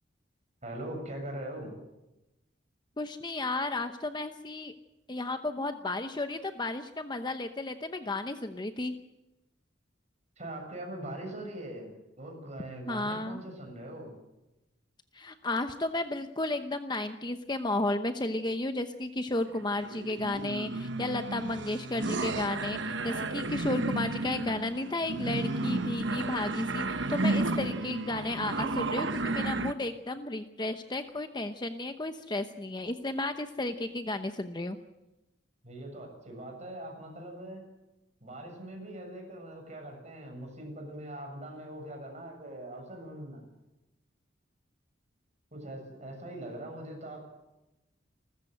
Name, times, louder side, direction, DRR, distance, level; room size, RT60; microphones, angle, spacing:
voice 1, 0.6-1.7 10.4-11.9 12.2-14.1 35.6-37.6 38.2-43.4 45.5-47.2, right 1 dB, 35° right, 2 dB, 7.3 m, -41 dB
voice 2, 3.0-4.7 5.1-8.9 12.9-13.4 15.1-34.8, left 2 dB, 25° left, 8 dB, 0.9 m, -33 dB
sound 1, 19.5-29.7, right 2 dB, 65° right, 1.1 m, -32 dB
29.0 x 14.5 x 7.9 m, 0.97 s
head